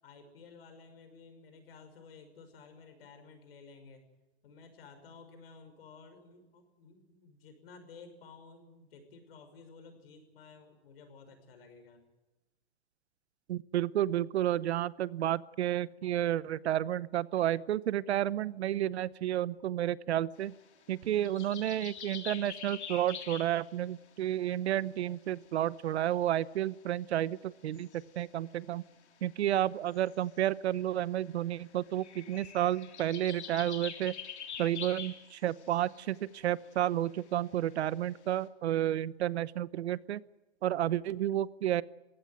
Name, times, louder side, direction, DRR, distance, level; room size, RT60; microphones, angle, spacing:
voice 1, 0.0-4.0 4.4-12.0, left 4 dB, 60° left, 7 dB, 6.0 m, -54 dB
voice 2, 13.5-20.5 20.9-28.8 29.2-34.1 34.6-40.2 40.6-41.8, right 12 dB, 75° right, 19 dB, 0.9 m, -31 dB
sound 1, 20.4-24.3 25.1-25.2 25.4-26.2 26.6-26.7 27.7-28.5 29.7-36.2 36.6-37.3 37.7-38.4, left 8 dB, 90° left, 3.5 m, -46 dB
21.0 x 16.5 x 9.3 m, 1.1 s
supercardioid pair, 170°, 33 cm